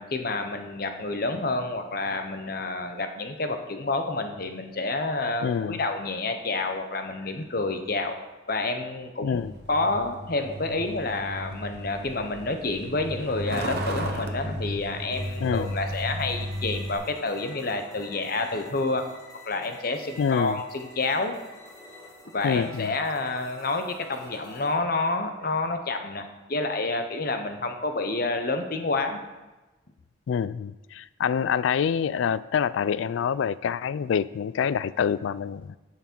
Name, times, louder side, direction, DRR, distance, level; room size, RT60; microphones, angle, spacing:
voice 1, 0.0-8.1 8.5-9.4 9.7-19.0 19.5-21.3 22.3-29.2, left 2 dB, 50° left, 6 dB, 0.9 m, -29 dB
voice 2, 5.4-5.8 9.2-9.5 15.4-15.7 20.2-20.6 22.4-22.9 30.3-35.8, left 7 dB, 75° left, 19 dB, 0.3 m, -26 dB
Truck, 9.3-17.0, equal, 55° right, 0.9 m, -34 dB
sound 1, 15.1-24.8, left 1 dB, 20° left, 1.5 m, -49 dB
11.0 x 5.9 x 4.5 m, 1.1 s
head